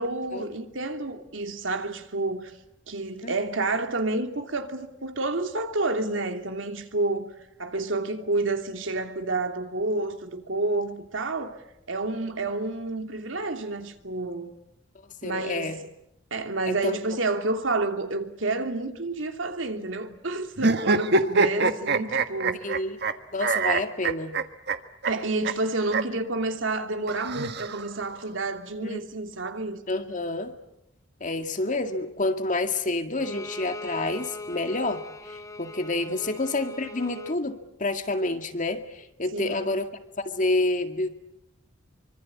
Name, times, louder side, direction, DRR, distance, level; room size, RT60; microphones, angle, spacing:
voice 1, 0.0-2.5 2.9-11.6 11.9-14.5 15.2-15.7 16.3-22.7 25.1-29.8 36.1-36.2 39.3-39.7, right 2 dB, 80° right, 2.8 m, -29 dB
voice 2, 15.2-15.8 16.7-17.0 22.6-23.0 23.3-24.3 28.8-29.0 29.9-30.5 31.2-39.9 40.2-41.1, left 2 dB, 40° left, 2.0 m, -28 dB
sound 1, 20.6-23.1 23.4-24.8 25.0-25.1 25.4-25.5 25.9-26.0 27.1-28.1, right 3 dB, 60° right, 1.5 m, -24 dB
Bowed string instrument, 33.2-37.4, left 2 dB, 15° left, 1.1 m, -40 dB
26.5 x 24.5 x 8.5 m
head